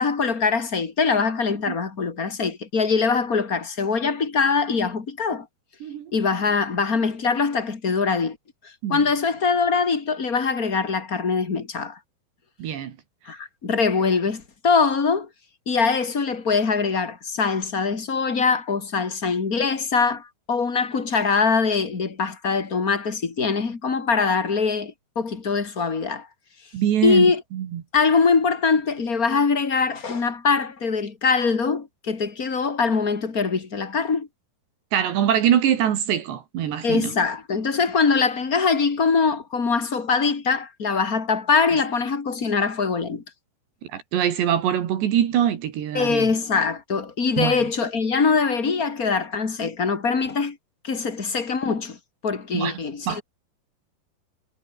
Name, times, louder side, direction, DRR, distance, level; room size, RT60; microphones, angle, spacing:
voice 1, 0.0-5.5 6.1-8.4 8.9-12.0 13.3-15.3 15.7-26.3 27.0-27.4 27.9-34.3 36.8-43.2 45.9-50.6 50.8-52.0 52.2-53.2, left 5 dB, 30° left, 1.7 m, -23 dB
voice 2, 5.8-6.1 8.8-9.0 12.6-12.9 26.7-27.8 34.9-37.1 43.9-46.3 47.4-47.6 52.5-52.8 53.1-53.2, right 10 dB, 70° right, 4.2 m, -23 dB
omnidirectional pair, 5.3 m